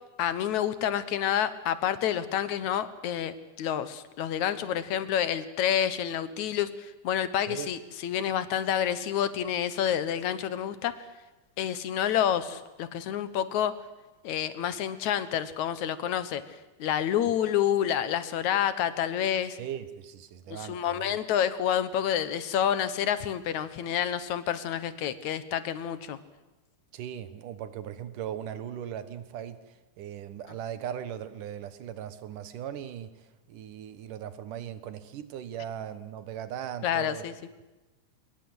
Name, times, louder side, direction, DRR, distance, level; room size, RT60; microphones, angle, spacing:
voice 1, 0.2-11.1 11.6-13.8 14.2-16.4 16.8-19.6 20.5-26.2 36.8-37.4, left 10 dB, 70° left, 14 dB, 2.5 m, -28 dB
voice 2, 19.6-21.2 26.9-29.6 30.0-33.2 33.5-37.2, right 10 dB, 90° right, 13 dB, 3.0 m, -38 dB
24.5 x 22.0 x 8.0 m, 1.1 s
omnidirectional pair, 3.6 m